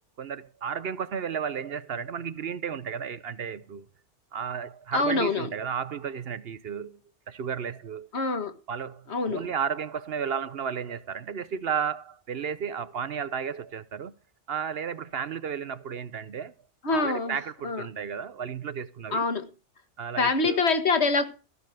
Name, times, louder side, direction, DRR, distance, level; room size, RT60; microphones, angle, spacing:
voice 1, 0.2-3.8 4.3-7.0 7.3-8.1 8.7-14.1 14.5-16.5 16.9-19.3 20.0-20.6, right 7 dB, 60° right, 0.9 m, -33 dB
voice 2, 4.9-5.5 8.1-8.5 9.1-9.5 16.8-17.4 17.6-17.8 19.1-19.5 20.2-21.3, left 3 dB, 65° left, 1.8 m, -25 dB
15.5 x 6.7 x 6.4 m
omnidirectional pair, 1.2 m